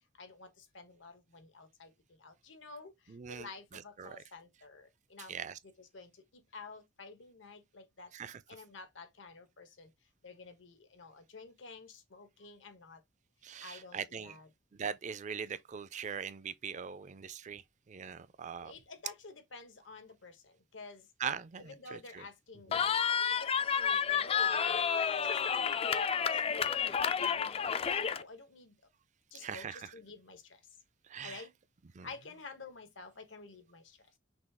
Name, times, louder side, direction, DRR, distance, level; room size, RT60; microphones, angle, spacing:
voice 1, 0.2-1.9 2.2-2.9 3.3-5.3 5.8-8.1 8.5-9.9 10.2-13.0 13.6-14.5 18.6-22.9 23.4-24.8 25.2-26.1 26.5-26.7 26.9-28.7 29.3-30.4 31.2-31.5 32.0-33.8, left 4 dB, 80° left, 1.1 m, -51 dB
voice 2, 3.1-4.2 5.3-5.6 8.1-8.4 13.4-14.3 14.7-17.6 17.9-18.7 21.2-22.3 22.7-22.8 29.3-29.9 31.1-31.4 32.0-32.1, right 7 dB, 40° right, 0.4 m, -41 dB
Cheering, 22.7-28.2, left 7 dB, 30° left, 0.3 m, -30 dB
6.0 x 2.4 x 3.5 m
head